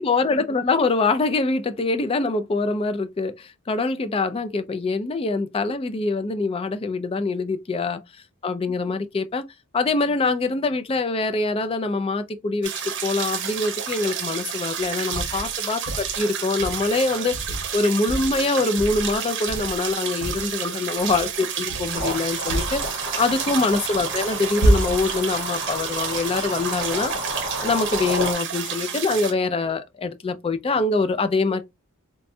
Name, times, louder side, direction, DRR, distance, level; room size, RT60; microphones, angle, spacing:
voice 1, 0.0-8.0 8.4-9.5 9.7-12.7 13.0-27.1 27.6-31.6, left 3 dB, 25° left, 0.3 m, -24 dB
sound 1, 12.6-29.3, right 8 dB, 55° right, 0.7 m, -30 dB
sound 2, 15.1-15.5 15.9-16.2 16.6-16.9 17.3-17.8 18.1-18.4 18.8-19.2 19.5-19.9 20.2-20.5 21.0-21.3 21.7-22.1 22.5-22.9 24.6-25.2, right 1 dB, 85° left, 1.5 m, -26 dB
sound 3, 21.9-28.3, equal, 55° left, 1.0 m, -32 dB
4.1 x 2.3 x 2.6 m
head